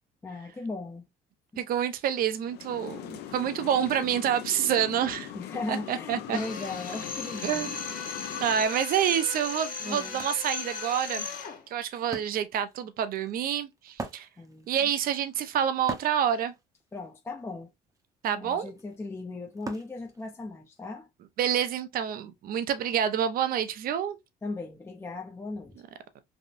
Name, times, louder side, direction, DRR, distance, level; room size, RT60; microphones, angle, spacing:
voice 1, 0.2-1.1 1.5-1.6 5.3-7.7 9.8-10.2 14.4-14.9 16.9-17.7 18.3-21.1 24.4-25.7, left 3 dB, 15° left, 0.5 m, -37 dB
voice 2, 1.6-5.3 5.7-6.4 7.4-7.7 8.4-11.3 11.7-14.3 14.7-16.5 18.2-18.7 21.4-24.2, right 9 dB, 60° right, 0.6 m, -28 dB
sound 1, 2.4-8.6, left 10 dB, 75° left, 0.5 m, -41 dB
Drill, 6.3-11.6, left 5 dB, 55° left, 0.9 m, -37 dB
Wood, 10.2-20.8, right 3 dB, 20° right, 0.7 m, -45 dB
3.4 x 2.6 x 2.5 m
cardioid pair, 110°, 17 cm